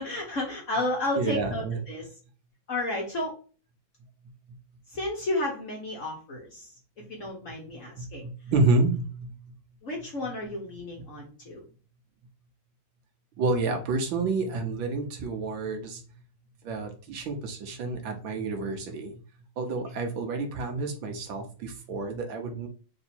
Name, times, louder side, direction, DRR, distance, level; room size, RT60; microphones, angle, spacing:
voice 1, 0.0-2.1 2.7-3.3 4.9-6.7 7.1-8.3 9.8-11.6, left 1 dB, 50° left, -1 dB, 1.1 m, -32 dB
voice 2, 1.2-1.8 8.0-9.4 13.4-16.0 16.6-19.2 19.6-22.7, right 3 dB, 75° right, 4 dB, 1.5 m, -29 dB
3.9 x 2.7 x 4.2 m, 0.38 s
omnidirectional pair, 2.3 m